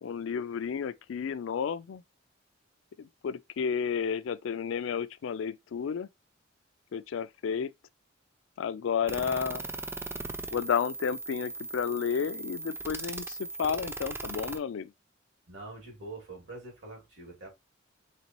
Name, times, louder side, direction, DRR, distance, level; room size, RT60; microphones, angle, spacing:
voice 1, 0.0-2.0 3.0-6.1 6.9-7.7 8.6-9.6 10.5-14.9, left 7 dB, 75° left, 0.3 m, -32 dB
voice 2, 9.0-9.8 15.5-17.5, right 2 dB, 70° right, 2.4 m, -46 dB
sound 1, 9.1-14.6, right 3 dB, 10° right, 0.3 m, -39 dB
4.1 x 3.3 x 2.9 m
head